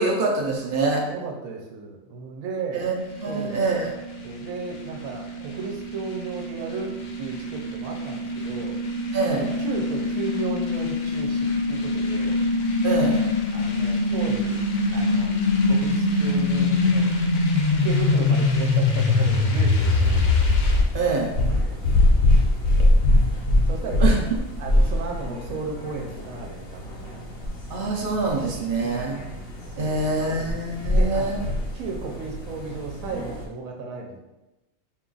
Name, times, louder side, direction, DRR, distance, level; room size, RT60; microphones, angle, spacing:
voice 1, 0.0-1.1 2.7-2.9 3.2-4.0 9.1-9.5 12.8-13.2 20.9-21.3 24.0-24.2 27.7-29.2 29.8-31.4, right 3 dB, 60° right, 1 dB, 0.6 m, -25 dB
voice 2, 1.0-2.8 3.3-3.6 4.2-6.9 7.2-8.8 9.4-12.3 13.5-14.6 14.9-15.3 15.6-17.2 17.7-20.3 21.1-21.2 21.6-21.8 22.8-22.9 23.7-24.1 24.6-27.0 28.8-29.1 29.8-30.3 30.8-31.4 31.7-34.3, right 4 dB, 90° right, 0 dB, 1.0 m, -34 dB
sound 1, 3.0-20.8, left 3 dB, 80° left, 0.4 m, -24 dB
sound 2, 19.8-33.4, left 1 dB, 50° left, 1.1 m, -24 dB
4.5 x 2.3 x 3.8 m, 0.99 s
omnidirectional pair, 1.4 m